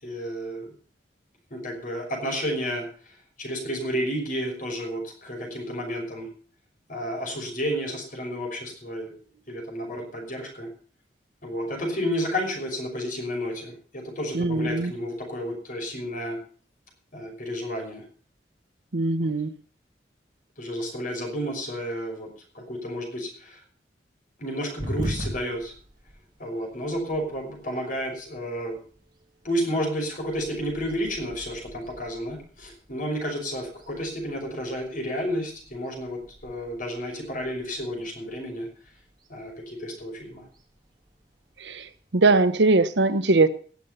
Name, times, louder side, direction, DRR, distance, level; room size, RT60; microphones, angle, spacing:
voice 1, 0.0-0.7 1.5-6.3 6.9-9.1 9.5-10.7 11.4-16.4 17.1-18.0 19.2-19.3 20.6-22.3 22.5-23.6 24.4-25.7 26.4-28.8 29.4-38.7 39.3-40.5, equal, 50° left, 2 dB, 5.8 m, -31 dB
voice 2, 14.3-14.9 18.9-19.5 41.6-41.9 42.1-43.5, right 3 dB, 85° right, 13 dB, 1.0 m, -21 dB
sound 1, 24.8-42.6, equal, 25° right, 3.2 m, -43 dB
19.0 x 7.2 x 5.6 m, 0.42 s
head